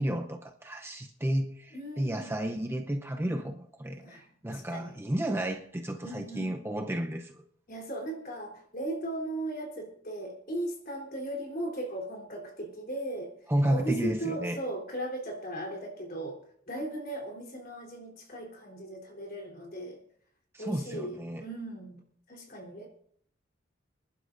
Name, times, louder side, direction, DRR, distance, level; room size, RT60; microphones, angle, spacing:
voice 1, 0.0-7.4 13.5-14.6 20.5-21.4, right 1 dB, 15° right, 0.6 m, -32 dB
voice 2, 1.7-2.4 4.0-4.9 6.0-6.9 7.7-13.3 13.6-16.4 16.7-20.0 20.6-22.0 22.3-22.9, right 1 dB, 50° left, 3.5 m, -37 dB
27.0 x 11.5 x 2.6 m
head